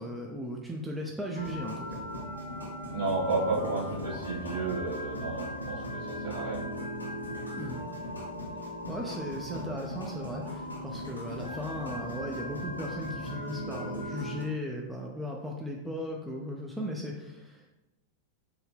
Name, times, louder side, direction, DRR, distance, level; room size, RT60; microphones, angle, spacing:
voice 1, 0.0-2.0 7.5-7.8 8.9-17.7, equal, 5° right, -1 dB, 0.4 m, -37 dB
sound 1, 1.3-14.4, left 1 dB, 80° left, 0.5 m, -38 dB
voice 2, 2.9-5.8 6.2-6.7, right 3 dB, 60° right, -7 dB, 1.4 m, -31 dB
3.6 x 2.1 x 3.3 m, 0.98 s
figure-of-eight pair, 90°, 0 cm